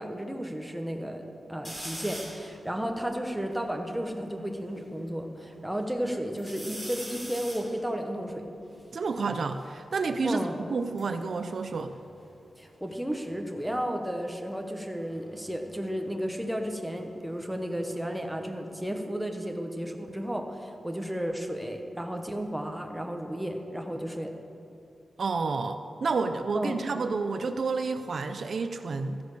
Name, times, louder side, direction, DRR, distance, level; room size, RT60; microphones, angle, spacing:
voice 1, 0.0-8.4 10.2-10.6 12.6-24.3 26.5-26.8, equal, 5° right, 3 dB, 1.1 m, -33 dB
sound 1, 1.6-2.5 3.0-3.1 3.3-4.9 5.4-6.0 6.4-9.8 10.7-12.6 12.9-13.4 14.9-17.6 17.9-18.7, equal, 10° left, 3.2 m, -45 dB
voice 2, 8.9-11.9 25.2-29.2, right 4 dB, 55° right, 8 dB, 0.5 m, -30 dB
13.5 x 10.5 x 6.6 m, 2.7 s
wide cardioid pair, 150°, 0 cm